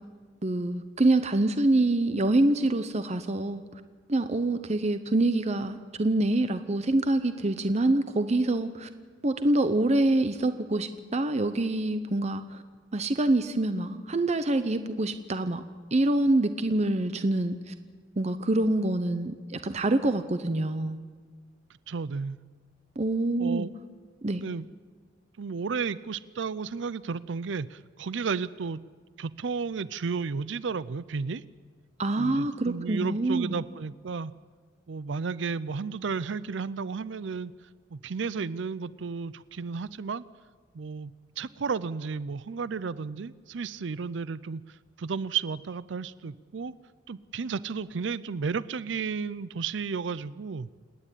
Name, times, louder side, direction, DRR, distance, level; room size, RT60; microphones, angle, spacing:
voice 1, 0.4-3.6 4.1-8.9 9.2-12.6 12.9-15.6 15.9-17.7 18.2-21.0 23.0-23.7 24.2-24.4 32.0-33.6, right 2 dB, 35° right, 10 dB, 0.7 m, -26 dB
voice 2, 21.9-22.4 23.4-23.7 24.4-24.7 25.4-28.8 29.2-31.4 32.2-34.3 34.9-37.5 37.9-40.2 40.7-46.7 47.1-50.7, right 5 dB, 70° right, 18 dB, 0.5 m, -33 dB
28.0 x 9.9 x 9.9 m, 1.5 s
head